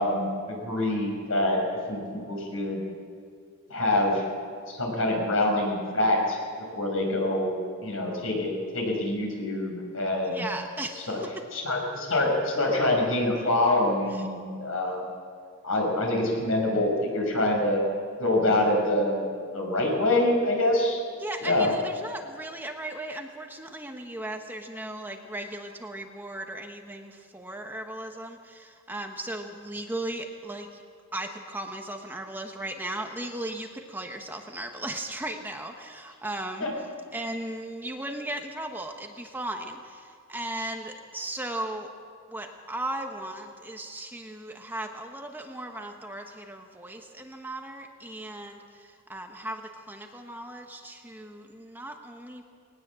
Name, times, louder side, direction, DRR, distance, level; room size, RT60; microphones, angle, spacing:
voice 1, 0.0-2.8 3.7-4.2 4.7-6.4 6.7-10.4 11.1-11.2 11.5-15.1 15.6-17.8 18.2-21.0 21.4-21.7 36.6-36.7, left 1 dB, 70° left, 1 dB, 6.1 m, -25 dB
voice 2, 10.2-11.3 14.1-14.3 21.2-30.8 31.1-36.7 37.1-41.9 42.3-52.4, right 1 dB, 10° right, 3 dB, 1.2 m, -37 dB
20.0 x 19.5 x 7.7 m, 2.2 s
head